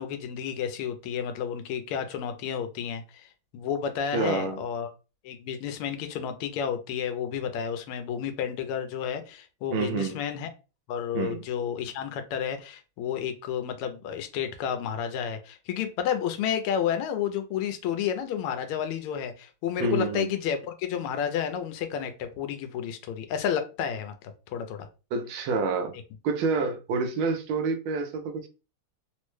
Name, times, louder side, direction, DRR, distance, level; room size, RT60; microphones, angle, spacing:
voice 1, 0.0-3.3 3.5-4.9 5.2-10.5 10.9-24.1 24.5-24.9, left 8 dB, 85° left, 1.5 m, -31 dB
voice 2, 4.1-4.6 9.7-10.2 11.1-11.4 19.8-20.3 25.1-26.0 26.2-28.5, right 4 dB, 75° right, 1.4 m, -28 dB
3.9 x 2.1 x 3.1 m
omnidirectional pair, 2.4 m